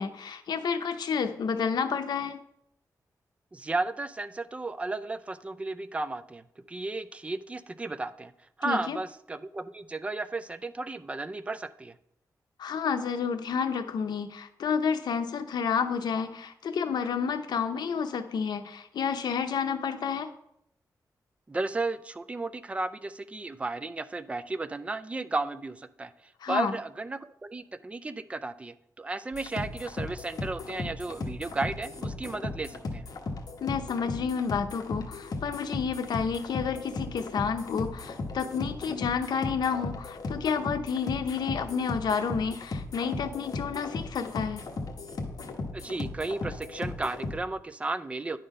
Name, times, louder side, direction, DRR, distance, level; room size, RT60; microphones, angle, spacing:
voice 1, 0.0-2.4 8.6-9.0 12.6-20.3 26.4-26.7 33.6-44.6, left 6 dB, 90° left, 8 dB, 0.7 m, -30 dB
voice 2, 3.5-8.3 8.6-11.9 21.5-33.0 45.7-48.4, right 3 dB, 20° right, 12 dB, 0.3 m, -34 dB
sound 1, 29.3-47.4, left 2 dB, 60° left, 1.0 m, -37 dB
9.8 x 3.8 x 5.4 m, 0.74 s
wide cardioid pair, 145°, 7 cm